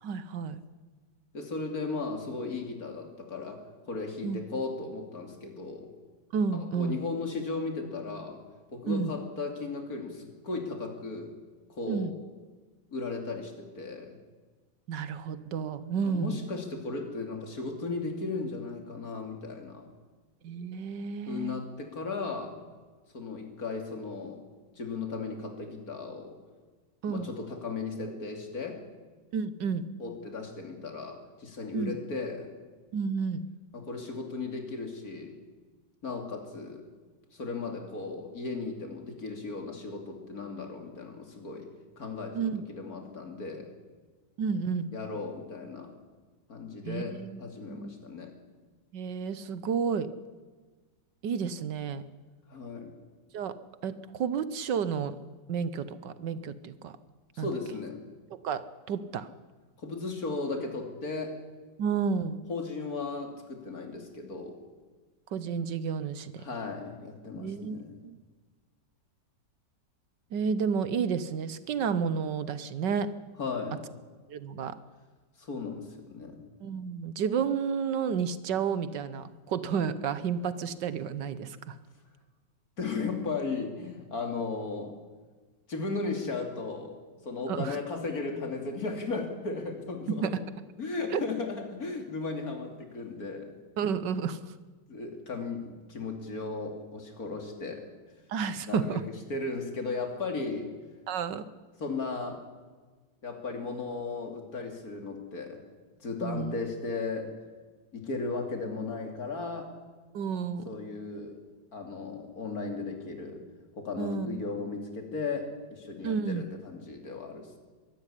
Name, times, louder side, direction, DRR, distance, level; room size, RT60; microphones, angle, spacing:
voice 1, 0.0-0.6 4.2-4.4 6.3-7.0 8.9-9.1 11.9-12.1 14.9-16.4 20.4-21.5 27.0-27.3 29.3-29.9 31.7-32.0 32.9-33.5 42.3-42.6 44.4-44.9 46.8-47.4 47.7-47.9 48.9-50.1 51.2-52.0 53.3-53.6 53.8-55.2 55.5-57.0 57.4-57.5 58.3-59.3 61.8-62.4 65.3-66.4 67.4-67.8 68.0-68.2 70.3-73.1 74.3-74.8 76.6-81.8 87.5-87.8 90.2-90.3 91.1-91.2 93.8-94.5 98.3-99.0 101.1-101.5 106.2-106.6 110.1-110.7 114.0-114.4 116.0-116.4, right 6 dB, 75° right, 14 dB, 1.6 m, -31 dB
voice 2, 1.3-5.9 6.5-8.4 8.7-11.3 11.7-12.1 12.9-14.2 16.0-19.9 21.3-22.6 23.1-24.4 24.8-26.4 27.1-28.8 30.0-32.5 33.7-35.4 36.0-36.8 37.3-41.7 42.0-43.7 44.9-46.0 46.5-48.3 52.5-52.9 57.3-58.0 59.8-61.4 62.5-64.6 66.4-67.9 73.4-73.8 75.4-76.4 82.8-85.0 85.7-87.0 87.2-90.3 90.8-93.5 94.9-97.9 98.7-99.0 99.3-100.7 101.8-102.4 103.2-105.6 106.0-107.3 107.9-109.7 110.6-111.4 111.7-113.4 113.8-117.6, left 3 dB, 55° left, 4 dB, 3.3 m, -36 dB
23.0 x 13.0 x 10.0 m, 1.4 s
omnidirectional pair, 2.0 m